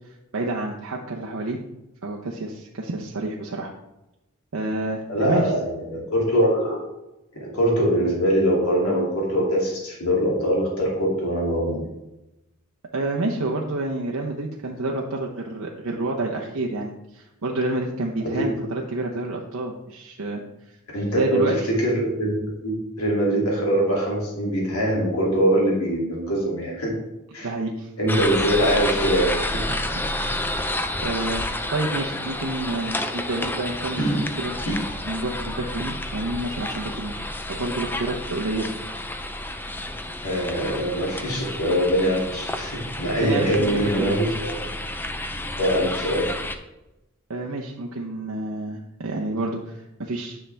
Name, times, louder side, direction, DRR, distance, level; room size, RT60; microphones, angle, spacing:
voice 1, 0.3-1.6 2.0-3.7 4.5-5.4 12.9-20.4 20.7-20.8 21.1-21.5 27.4-27.9 29.7-29.9 31.0-34.1 34.4-34.5 35.1-37.2 37.5-38.7 43.2-44.2 47.3-50.4, right 2 dB, 85° right, -1 dB, 0.8 m, -29 dB
voice 2, 5.1-6.8 7.3-11.9 18.3-18.5 20.9-26.9 27.3-27.5 28.0-29.6 34.0-34.2 34.7-34.8 40.2-44.3 44.5-44.7 45.6-46.3, equal, 85° left, -3 dB, 2.7 m, -23 dB
sound 1, 28.1-46.5, left 1 dB, 10° left, 0.5 m, -30 dB
10.0 x 5.8 x 3.4 m, 0.94 s
head